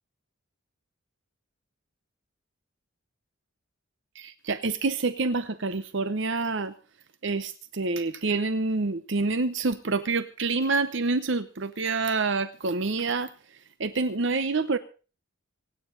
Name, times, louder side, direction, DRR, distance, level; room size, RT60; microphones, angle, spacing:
voice 1, 4.2-6.7 7.2-13.3 13.8-14.8, right 3 dB, 55° right, 13 dB, 0.7 m, -27 dB
25.5 x 9.4 x 3.8 m, 0.36 s
head